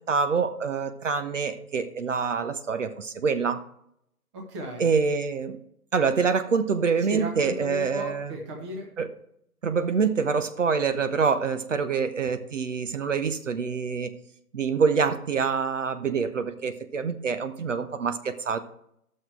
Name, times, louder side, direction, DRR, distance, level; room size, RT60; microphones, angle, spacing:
voice 1, 0.1-3.6 4.8-5.6 5.9-8.3 9.0-9.1 9.6-14.1 14.5-18.6, right 5 dB, 55° right, 9 dB, 0.8 m, -26 dB
voice 2, 4.3-4.8 7.0-8.9, equal, 20° right, 0 dB, 1.2 m, -35 dB
10.5 x 6.5 x 4.6 m, 0.73 s
figure-of-eight pair, 150°, 45 cm